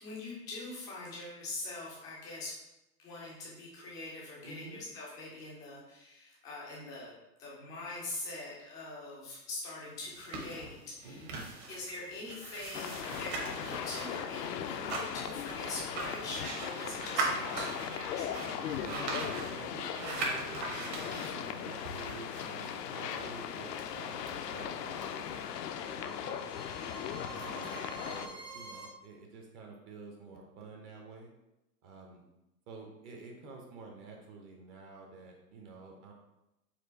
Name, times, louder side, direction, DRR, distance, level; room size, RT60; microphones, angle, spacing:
voice 1, 0.0-2.5 3.0-7.1 7.4-18.6 27.4-28.1, left 2 dB, 10° left, -5 dB, 0.3 m, -43 dB
voice 2, 4.4-4.8 11.0-11.4 18.8-25.4 25.8-26.6 27.3-31.3 31.8-32.2 32.7-36.1, right 3 dB, 30° right, 1 dB, 0.6 m, -49 dB
sound 1, 10.0-25.5, right 3 dB, 45° right, 1.1 m, -41 dB
sound 2, 12.7-28.3, left 9 dB, 80° left, 0.5 m, -39 dB
sound 3, 22.8-28.8, right 3 dB, 65° right, 1.3 m, -50 dB
4.4 x 2.4 x 3.9 m, 0.93 s
hypercardioid pair, 125°, 48 cm